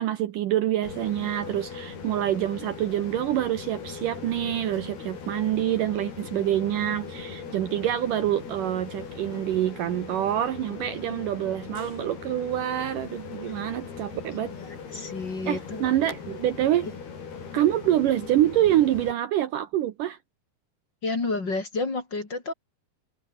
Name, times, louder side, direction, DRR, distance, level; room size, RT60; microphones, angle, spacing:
voice 1, 0.0-14.5 15.5-16.9 17.5-20.2, right 12 dB, 70° right, 2.3 m, -26 dB
sound 1, 0.8-19.1, left 6 dB, 75° left, 6.8 m, -39 dB
voice 2, 14.6-15.9 16.8-16.9 21.0-22.5, left 3 dB, 30° left, 3.4 m, -31 dB
omnidirectional pair, 4.6 m